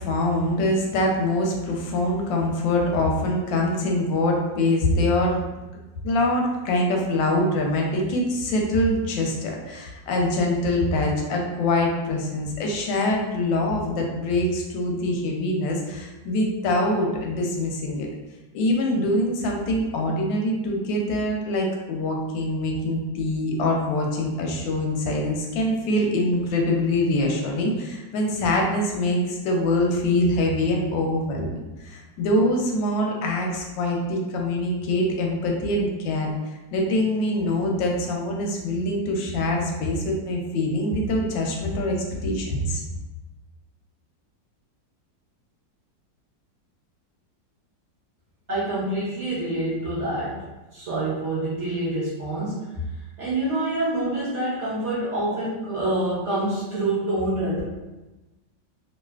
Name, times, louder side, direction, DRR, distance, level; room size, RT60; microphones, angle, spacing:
voice 1, 0.0-5.4 6.0-18.1 18.5-31.6 31.8-36.3 36.7-42.0 42.2-42.8, left 1 dB, 90° left, 0 dB, 1.3 m, -24 dB
voice 2, 48.5-50.5 50.7-52.9 53.2-57.6, right 1 dB, 55° right, -8 dB, 0.9 m, -26 dB
3.1 x 2.4 x 2.3 m, 1.1 s
omnidirectional pair, 2.0 m